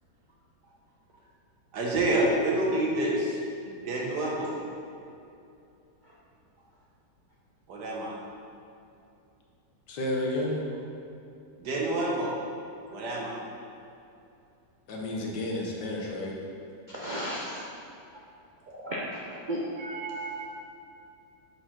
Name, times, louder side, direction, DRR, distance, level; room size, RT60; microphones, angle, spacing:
voice 1, 1.7-3.4 3.7-4.5 7.7-8.1 11.6-12.3 12.9-13.4 19.8-20.5, right 1 dB, 75° right, -3 dB, 1.6 m, -28 dB
voice 2, 9.9-10.6 14.9-16.3, left 1 dB, 80° left, -2 dB, 1.6 m, -31 dB
voice 3, 16.9-17.6 18.7-19.6, equal, 55° right, -6 dB, 0.5 m, -34 dB
5.1 x 4.4 x 5.8 m, 2.7 s
omnidirectional pair, 1.8 m